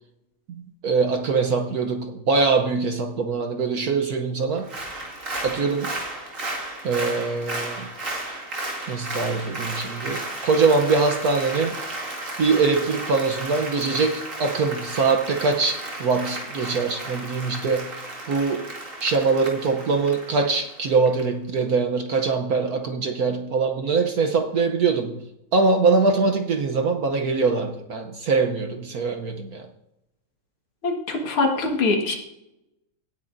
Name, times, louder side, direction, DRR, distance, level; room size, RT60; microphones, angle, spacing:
voice 1, 0.5-4.7 5.4-5.9 6.8-7.9 8.9-11.8 12.4-17.9 18.3-18.7 19.0-25.2 25.5-29.7, right 4 dB, 60° right, 5 dB, 1.1 m, -23 dB
Applause, 4.6-21.2 21.6-21.7, right 2 dB, 40° right, 2.4 m, -34 dB
voice 2, 30.8-32.1, left 3 dB, 90° left, 2 dB, 2.6 m, -23 dB
17.5 x 9.7 x 2.6 m, 0.88 s
omnidirectional pair, 2.3 m